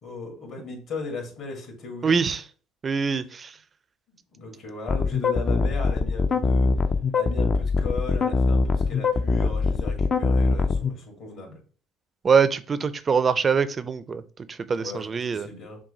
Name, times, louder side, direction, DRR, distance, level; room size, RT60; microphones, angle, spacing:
voice 1, 0.0-2.4 4.1-6.7 7.1-11.6 14.7-15.8, left 3 dB, 55° left, 2.2 m, -37 dB
voice 2, 2.0-2.4 2.8-3.5 12.2-14.2 14.5-15.5, right 6 dB, 35° right, 0.4 m, -23 dB
sound 1, 4.9-10.9, left 4 dB, 40° left, 0.4 m, -22 dB
6.0 x 2.2 x 3.9 m
supercardioid pair, 90°, 0 cm